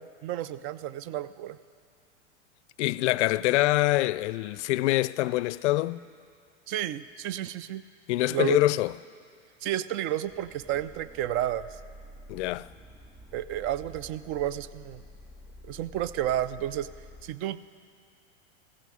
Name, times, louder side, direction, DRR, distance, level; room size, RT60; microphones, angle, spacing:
voice 1, 0.0-1.6 6.7-7.8 8.3-8.6 9.6-11.7 13.3-15.0 15.7-16.9 17.2-17.8, right 12 dB, 35° right, 0.4 m, -31 dB
voice 2, 2.8-6.0 8.1-8.9 12.3-12.7, left 17 dB, 65° left, 0.5 m, -25 dB
sound 1, 10.2-17.2, equal, 15° right, 3.6 m, -49 dB
16.0 x 15.0 x 4.9 m
hypercardioid pair, 115°, 37 cm